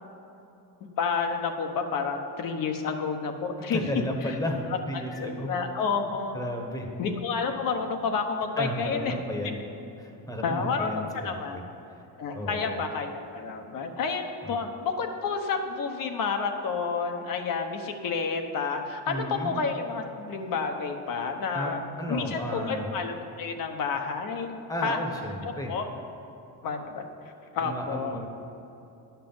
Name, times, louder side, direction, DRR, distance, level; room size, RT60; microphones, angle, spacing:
voice 1, 1.0-3.8 4.2-4.3 5.1-6.4 7.0-9.1 10.4-11.6 12.2-21.8 22.1-25.0 25.4-25.9 26.6-27.0 27.5-28.2, left 5 dB, 55° left, 5 dB, 1.1 m, -30 dB
voice 2, 3.7-5.5 6.3-6.9 8.6-9.6 10.0-11.6 12.3-12.8 14.4-14.6 19.1-19.6 21.5-22.9 24.7-25.7 27.6-28.3, equal, 10° left, 2 dB, 1.2 m, -33 dB
11.5 x 5.8 x 7.2 m, 2.9 s
cardioid pair, 135°, 39 cm